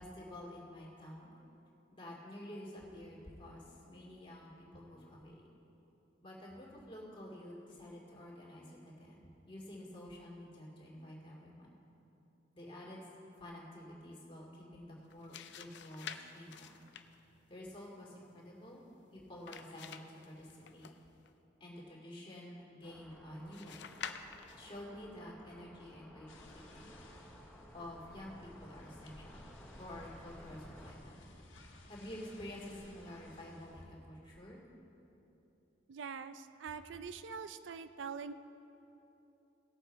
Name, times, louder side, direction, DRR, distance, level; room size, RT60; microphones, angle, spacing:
voice 1, 0.0-1.3 1.9-5.5 6.2-11.7 12.5-13.0 13.4-16.7 17.5-18.8 19.1-20.9 21.6-24.0 24.6-26.9 27.7-29.5 29.8-31.2 31.9-34.6, left 1 dB, 30° left, -4 dB, 2.3 m, -50 dB
sound 1, 15.0-21.3 23.5-24.7, left 8 dB, 65° left, 0.5 m, -50 dB
sound 2, 22.8-30.9, equal, 5° left, 0.9 m, -56 dB
sound 3, 26.3-33.9, left 2 dB, 85° left, 1.5 m, -58 dB
voice 2, 35.9-38.3, right 5 dB, 70° right, 11 dB, 0.4 m, -44 dB
17.5 x 7.1 x 4.5 m, 2.9 s
head